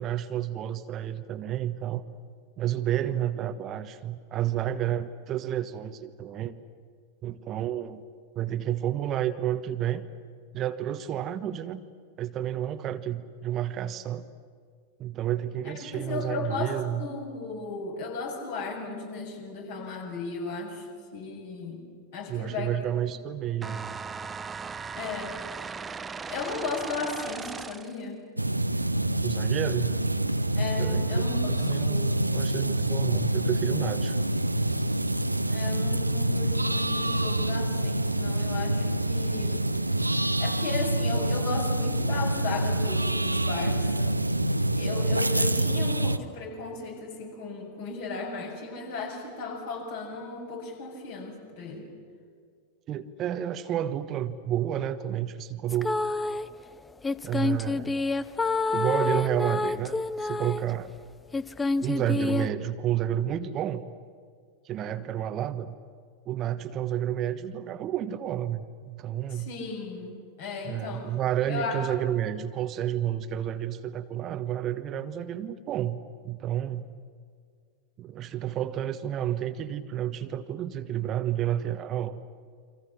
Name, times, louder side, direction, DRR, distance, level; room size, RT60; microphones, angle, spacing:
voice 1, 0.0-2.0 2.6-6.6 7.2-8.0 8.3-10.0 10.5-11.8 12.2-14.2 15.0-17.0 22.3-23.9 29.2-30.0 30.8-34.2 52.9-56.0 57.2-58.0 58.7-60.9 61.8-63.9 64.6-65.7 66.3-69.5 70.6-76.9 78.0-82.2, right 11 dB, 30° right, 10 dB, 1.2 m, -30 dB
voice 2, 15.6-20.9 21.1-22.7 25.0-25.4 26.3-28.2 30.5-31.4 31.7-32.2 35.5-39.7 40.4-44.2 44.8-51.8 69.3-71.1 71.5-71.8, left 4 dB, 55° left, 1 dB, 7.4 m, -36 dB
sound 1, 23.6-28.0, right 5 dB, 15° right, 0.8 m, -38 dB
sound 2, 28.4-46.2, right 1 dB, 85° right, 0.8 m, -26 dB
sound 3, 55.7-56.5 57.0-60.7 61.3-62.5, left 3 dB, 15° left, 0.7 m, -28 dB
30.0 x 25.0 x 7.4 m, 2.1 s
figure-of-eight pair, 90°, 0 cm